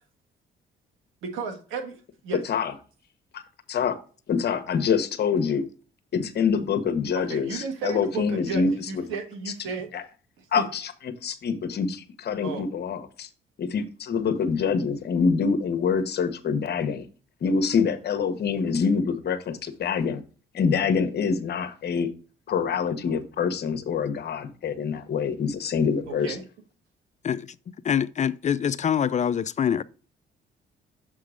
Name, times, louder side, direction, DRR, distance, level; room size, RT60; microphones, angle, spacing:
voice 1, 1.2-2.0 2.2-2.4 7.1-9.9 10.6-10.7 12.4-12.6 26.1-26.4, right 5 dB, 90° right, 1.5 m, -33 dB
voice 2, 4.3-5.6 6.1-9.0 9.5-9.6 9.9-10.0 10.5-13.3 13.6-17.0 17.4-20.2 20.5-22.1 22.5-26.4, left 6 dB, 55° left, 1.0 m, -26 dB
voice 3, 27.8-29.8, left 8 dB, 40° left, 0.4 m, -24 dB
7.0 x 3.7 x 4.9 m
cardioid pair, 90°, 20 cm